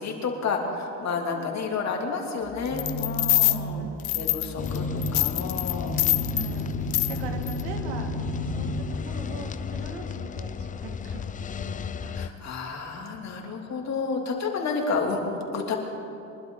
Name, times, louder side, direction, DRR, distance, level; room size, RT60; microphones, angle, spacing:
voice 1, 0.0-6.1 12.1-15.8, left 4 dB, 45° left, 1 dB, 2.8 m, -30 dB
voice 2, 1.3-1.7 3.5-5.0 6.2-12.1, right 4 dB, 85° right, 3 dB, 2.3 m, -42 dB
sound 1, 2.4-9.3, right 1 dB, 90° left, 2.9 m, -34 dB
sound 2, 2.8-3.6 4.0-4.8 5.0-6.5 6.9-7.2 7.5-7.6, left 20 dB, 65° left, 0.8 m, -24 dB
sound 3, 4.6-12.3, left 7 dB, 20° left, 0.4 m, -33 dB
24.0 x 11.5 x 3.9 m, 2.9 s
supercardioid pair, 95°, 39 cm